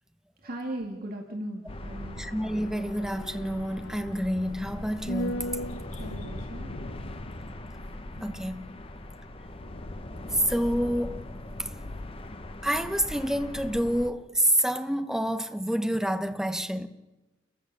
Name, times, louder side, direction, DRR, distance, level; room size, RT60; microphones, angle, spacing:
voice 1, 0.4-2.3 6.0-6.9, right 1 dB, 50° right, 2.3 m, -38 dB
sound 1, 1.7-12.1 12.4-12.5, equal, 80° left, 1.1 m, -41 dB
sound 2, 1.7-14.1, left 1 dB, 30° left, 1.0 m, -40 dB
voice 2, 2.2-5.4 8.2-8.7 10.3-11.3 11.6-11.7 12.6-16.9, equal, 5° right, 0.9 m, -28 dB
29.0 x 14.5 x 7.0 m
head